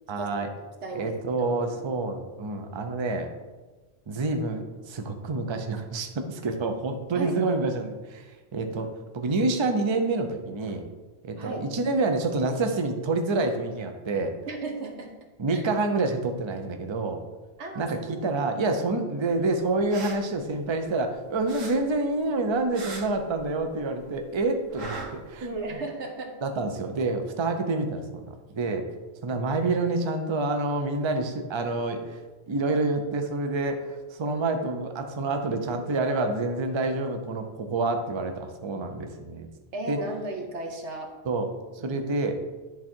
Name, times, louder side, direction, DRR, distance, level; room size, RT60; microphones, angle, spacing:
voice 1, 0.1-0.5 0.9-3.3 4.1-8.9 9.1-10.8 11.2-14.3 15.4-17.2 17.8-25.5 26.4-28.8 29.2-32.2 32.5-39.5 39.9-40.0 41.2-41.5 41.7-42.4, right 3 dB, 30° right, 5 dB, 0.5 m, -28 dB
voice 2, 0.8-1.8 7.1-7.3 8.6-8.7 11.4-11.7 14.5-15.1 15.5-15.6 17.6-18.4 25.5-26.4 39.7-41.1 41.8-42.0, right 2 dB, 65° right, 2 dB, 1.2 m, -35 dB
sound 1, 19.7-21.1 21.5-23.9 24.1-25.7, right 3 dB, 85° right, 1.5 m, -40 dB
10.5 x 3.6 x 4.4 m, 1.2 s
omnidirectional pair, 1.3 m